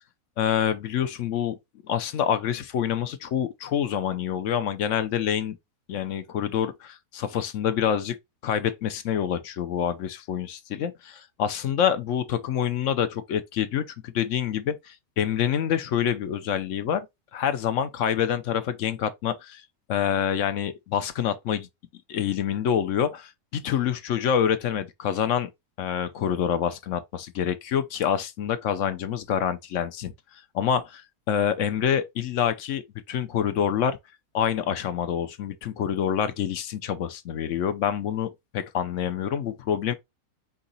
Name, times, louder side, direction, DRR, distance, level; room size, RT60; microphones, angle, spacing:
voice 1, 0.4-1.5 1.9-5.6 5.9-8.2 8.4-17.1 17.3-19.6 19.9-21.7 22.1-25.5 25.8-30.1 30.5-34.0 34.3-39.9, left 9 dB, 65° left, 0.9 m, -27 dB
4.7 x 2.8 x 3.8 m
omnidirectional pair, 1.6 m